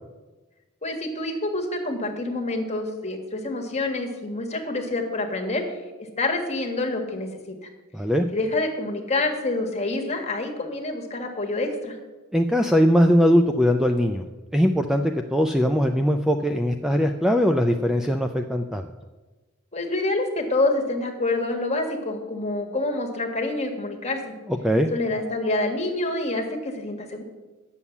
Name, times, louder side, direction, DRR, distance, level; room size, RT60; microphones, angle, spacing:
voice 1, 0.8-5.6 6.2-7.5 8.3-12.0 19.7-24.3 24.9-27.2, left 2 dB, 30° left, 2 dB, 1.6 m, -27 dB
voice 2, 7.9-8.3 12.3-14.2 14.5-15.0 15.3-18.9 24.6-24.9, equal, ahead, 5 dB, 0.4 m, -20 dB
9.6 x 7.1 x 7.1 m, 1.2 s
head